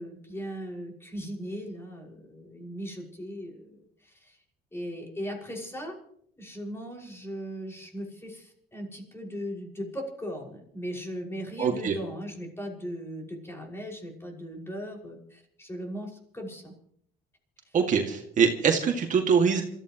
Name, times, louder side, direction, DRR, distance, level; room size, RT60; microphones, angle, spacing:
voice 1, 0.0-4.4 4.7-6.0 6.4-16.7 17.7-17.8, equal, 15° left, 0 dB, 5.8 m, -38 dB
voice 2, 11.6-11.9 17.7-19.6, right 6 dB, 50° right, 3 dB, 2.2 m, -23 dB
27.5 x 14.5 x 3.1 m, 0.67 s
cardioid pair, 110°, 17 cm